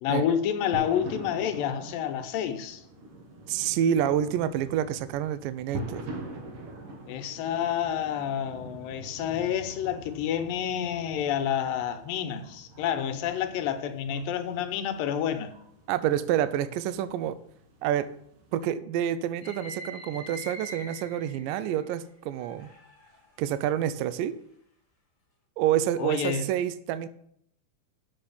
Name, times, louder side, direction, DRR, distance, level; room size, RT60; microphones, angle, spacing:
voice 1, 0.0-2.8 7.1-15.5 26.0-26.5, left 9 dB, 85° left, 2.4 m, -29 dB
sound 1, 0.7-18.7, right 2 dB, 60° right, 1.6 m, -44 dB
voice 2, 3.5-6.0 15.9-17.4 17.8-18.1 18.5-22.7 23.4-24.4 25.6-27.1, right 10 dB, 80° right, 2.1 m, -28 dB
sound 2, 19.4-21.8 22.4-23.2, right 1 dB, 20° left, 1.6 m, -43 dB
7.0 x 6.9 x 6.9 m
omnidirectional pair, 4.1 m